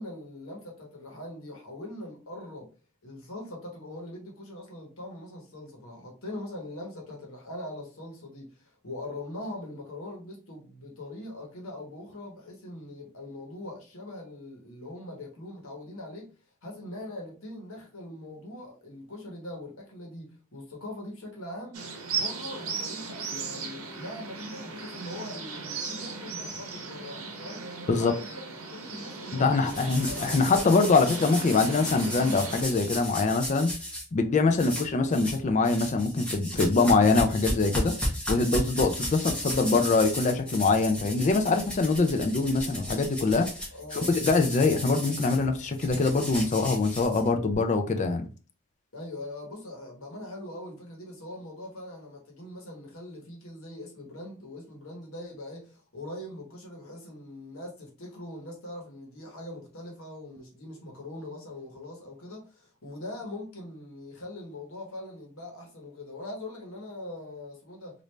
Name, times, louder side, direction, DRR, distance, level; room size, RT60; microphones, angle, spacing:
voice 1, 0.0-2.7 3.0-16.3 16.6-21.8 22.1-27.6 27.9-28.4 28.7-31.0 34.5-34.8 43.7-44.1 48.9-67.9, left 1 dB, 70° left, 1.1 m, -42 dB
sound 1, 21.7-32.6, right 4 dB, 70° right, 0.8 m, -37 dB
voice 2, 29.3-33.7 34.1-37.9 38.3-43.5 43.9-48.3, left 3 dB, 35° left, 0.4 m, -24 dB
sound 2, 29.7-34.0 34.6-35.4 35.6-47.5, equal, 5° left, 1.1 m, -35 dB
3.2 x 2.5 x 3.1 m
head